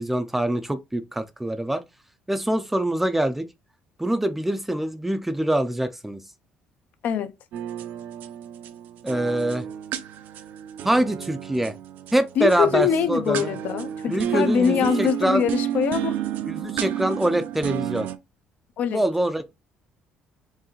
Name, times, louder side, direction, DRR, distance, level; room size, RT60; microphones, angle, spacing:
voice 1, 0.0-1.8 2.3-3.5 4.0-6.2 9.0-9.6 10.8-11.8 12.1-13.6 14.1-15.4 16.5-18.1 18.9-19.5, right 1 dB, 5° right, 0.4 m, -24 dB
sound 1, 7.5-18.2, right 10 dB, 70° right, 0.5 m, -31 dB
voice 2, 12.4-16.2 18.8-19.0, left 8 dB, 60° left, 0.5 m, -23 dB
4.6 x 3.2 x 3.0 m
cardioid pair, 135°, 3 cm